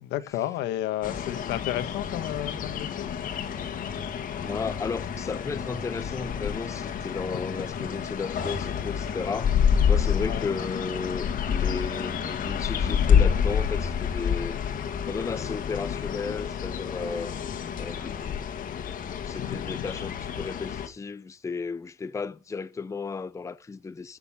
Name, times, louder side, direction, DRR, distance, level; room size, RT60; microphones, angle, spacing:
voice 1, 0.0-3.6 7.8-7.9 10.2-10.5 19.4-19.8, left 13 dB, 85° left, 1.4 m, -33 dB
sound 1, 1.0-20.9, left 7 dB, 55° left, 1.9 m, -28 dB
voice 2, 4.4-9.6 9.9-14.7 15.0-17.4 17.8-18.2 19.0-24.2, left 4 dB, 20° left, 0.6 m, -34 dB
14.5 x 6.8 x 5.4 m
cardioid pair, 110°, 17 cm